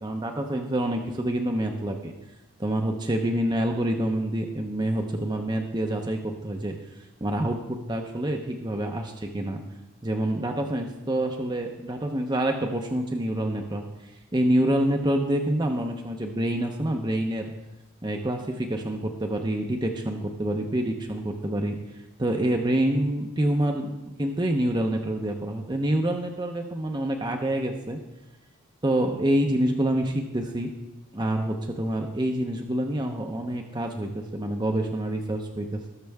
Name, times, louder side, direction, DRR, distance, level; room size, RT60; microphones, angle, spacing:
voice 1, 0.0-2.1 2.6-9.6 10.0-17.5 18.0-28.0 28.8-30.7 31.1-35.9, right 1 dB, 20° right, 3 dB, 0.7 m, -27 dB
19.0 x 6.7 x 3.5 m, 0.99 s
head